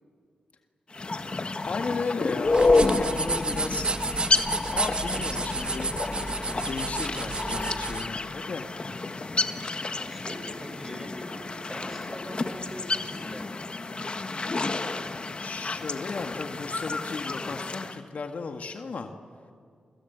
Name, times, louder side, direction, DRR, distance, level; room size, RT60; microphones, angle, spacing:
sound 1, 0.9-18.0, left 3 dB, 40° left, 1.7 m, -29 dB
voice 1, 1.6-3.9 4.7-6.0 6.7-8.7 15.4-19.1, left 4 dB, 65° left, 5 dB, 1.8 m, -35 dB
sound 2, 2.5-8.1, right 3 dB, 40° right, 1.1 m, -31 dB
voice 2, 10.1-13.7, equal, 5° right, 5 dB, 6.6 m, -42 dB
30.0 x 25.0 x 8.1 m, 2.2 s
cardioid pair, 50°, 3 cm